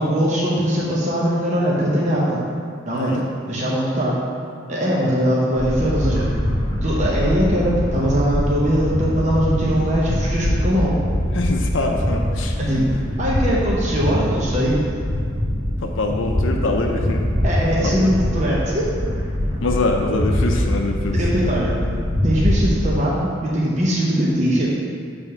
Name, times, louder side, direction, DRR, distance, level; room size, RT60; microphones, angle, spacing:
voice 1, 0.0-2.4 2.9-3.2 3.5-4.2 4.7-6.2 6.8-11.0 12.6-12.9 13.2-14.7 17.4-18.9 21.1-21.7 22.2-24.7, equal, 35° right, -6 dB, 0.8 m, -21 dB
sound 1, 5.6-23.0, left 1 dB, 65° right, 1.5 m, -23 dB
voice 2, 11.3-12.5 15.8-17.2 17.8-18.1 19.6-21.2, left 2 dB, 70° left, 2 dB, 0.5 m, -24 dB
6.9 x 3.5 x 5.6 m, 2.3 s
head